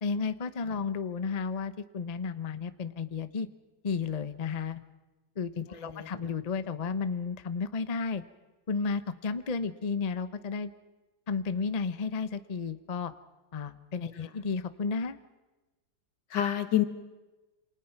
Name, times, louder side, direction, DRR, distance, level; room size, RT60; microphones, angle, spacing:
voice 1, 0.0-3.5 3.8-4.8 5.4-8.2 8.7-10.7 11.3-13.1 13.5-15.2, left 5 dB, 30° left, 12 dB, 0.8 m, -32 dB
voice 2, 5.7-6.3 14.1-14.3 16.3-16.9, left 11 dB, 80° left, 10 dB, 2.1 m, -29 dB
28.5 x 26.5 x 5.9 m, 1.1 s
omnidirectional pair, 1.9 m